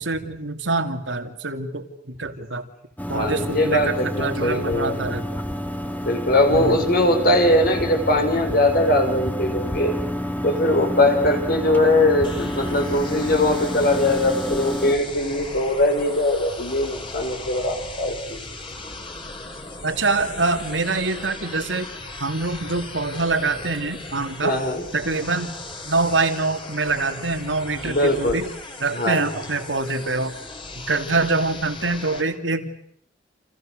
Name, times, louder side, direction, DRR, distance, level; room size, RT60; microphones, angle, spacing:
voice 1, 0.0-2.7 3.1-3.9 4.2-5.4 6.5-6.8 19.8-21.9 22.2-24.6 24.9-25.5 25.8-28.5 28.8-30.4 30.8-32.8, right 3 dB, 90° right, 7 dB, 2.9 m, -25 dB
sound 1, 3.0-15.0, left 1 dB, 10° left, 2.1 m, -29 dB
voice 2, 3.1-5.2 6.0-9.9 10.4-18.4 24.4-24.9 27.8-28.4 28.9-29.3, left 1 dB, 55° left, 5 dB, 6.0 m, -21 dB
sound 2, 12.2-32.2, left 2 dB, 30° left, 4.7 m, -37 dB
29.5 x 29.0 x 6.6 m, 0.68 s
head